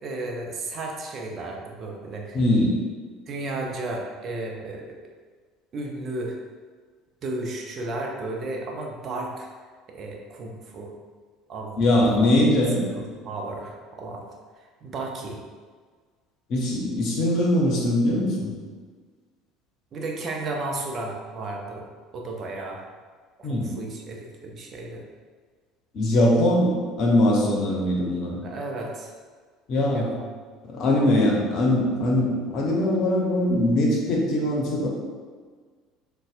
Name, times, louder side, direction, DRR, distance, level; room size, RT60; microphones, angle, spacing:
voice 1, 0.0-2.4 3.3-5.0 5.7-6.4 7.2-9.5 9.9-10.9 11.5-12.5 13.0-14.3 14.6-15.4 19.9-22.8 23.4-25.0 26.5-26.6 28.4-29.1 29.9-30.4, right 2 dB, 45° right, 0 dB, 0.6 m, -34 dB
voice 2, 2.3-2.8 11.8-12.8 16.5-18.5 23.4-23.7 25.9-28.4 29.7-30.1 30.7-34.9, left 1 dB, 55° left, -2 dB, 0.8 m, -21 dB
3.9 x 2.2 x 2.4 m, 1.5 s
hypercardioid pair, 65°, 0 cm